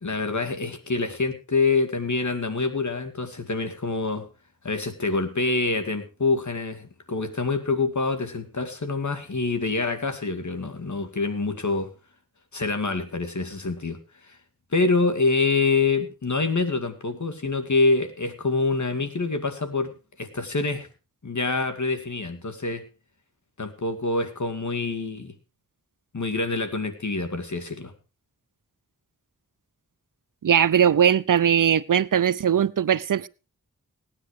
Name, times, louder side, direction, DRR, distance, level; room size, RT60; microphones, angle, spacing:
voice 1, 0.0-4.3 4.6-11.9 12.5-14.0 14.3-14.4 14.7-20.9 21.2-22.8 23.6-25.3 26.1-27.9, left 3 dB, 60° left, 2.3 m, -26 dB
voice 2, 30.4-33.3, right 8 dB, 75° right, 0.6 m, -20 dB
17.5 x 9.9 x 4.8 m
wide cardioid pair, 65°, 33 cm